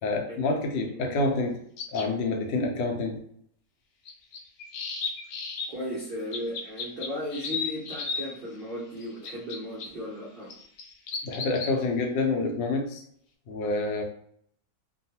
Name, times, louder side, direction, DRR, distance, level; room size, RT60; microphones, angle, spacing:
voice 1, 0.0-1.6 1.9-3.3 11.2-13.0 13.5-14.0, left 3 dB, 85° left, 3 dB, 1.3 m, -27 dB
sound 1, 1.8-2.1 4.0-5.7 6.3-8.3 9.0-9.9 10.5-11.7, left 5 dB, 70° left, 1.0 m, -34 dB
voice 2, 5.7-10.5, equal, 65° right, -7 dB, 0.5 m, -36 dB
3.0 x 2.2 x 2.7 m, 0.65 s
omnidirectional pair, 1.9 m